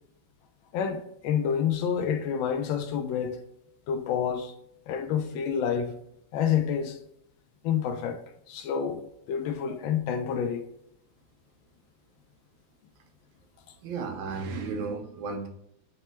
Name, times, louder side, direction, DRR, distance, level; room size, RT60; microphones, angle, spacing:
voice 1, 0.7-3.4 3.9-4.5 4.9-5.9 6.3-7.0 7.6-8.2 8.5-9.0 9.3-10.7, left 8 dB, 90° left, 1.3 m, -28 dB
voice 2, 13.8-15.5, right 4 dB, 80° right, 1.5 m, -33 dB
4.2 x 2.2 x 4.2 m
omnidirectional pair, 2.1 m